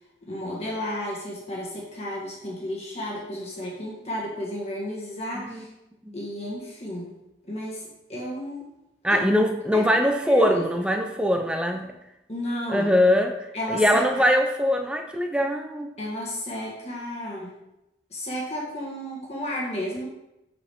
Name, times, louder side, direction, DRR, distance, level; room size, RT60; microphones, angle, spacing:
voice 1, 0.2-5.7 6.1-7.1 7.4-8.6 9.1-9.2 9.7-9.8 10.2-10.6 12.3-12.9 13.5-14.2 16.0-17.5 18.1-20.1, left 1 dB, 35° left, -4 dB, 1.8 m, -32 dB
voice 2, 9.0-11.9 12.7-13.4 13.7-15.9, equal, 5° right, 4 dB, 0.5 m, -22 dB
7.2 x 4.9 x 3.6 m, 0.90 s
head